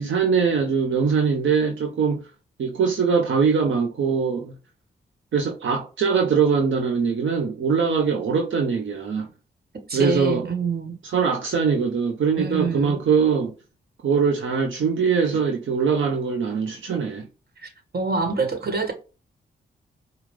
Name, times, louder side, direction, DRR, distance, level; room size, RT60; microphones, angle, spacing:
voice 1, 0.0-2.2 2.6-4.5 5.3-9.3 9.9-10.5 11.0-13.5 14.0-17.3, right 6 dB, 65° right, 0.8 m, -22 dB
voice 2, 9.9-11.0 12.4-13.0 17.6-18.9, right 4 dB, 50° right, 1.4 m, -26 dB
4.9 x 2.3 x 3.3 m
supercardioid pair, 45°, 21 cm